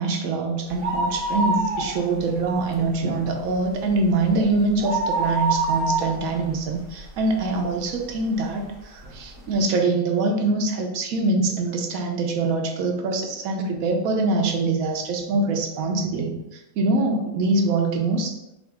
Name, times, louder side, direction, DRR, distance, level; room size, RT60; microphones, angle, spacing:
voice 1, 0.0-18.4, right 3 dB, 80° right, 3 dB, 1.0 m, -24 dB
sound 1, 0.7-2.3 2.7-2.8 3.2-7.6 8.1-8.2 9.0-9.1 9.3-9.4, right 3 dB, 55° right, 0.7 m, -26 dB
3.8 x 2.4 x 3.4 m, 0.91 s
omnidirectional pair, 1.5 m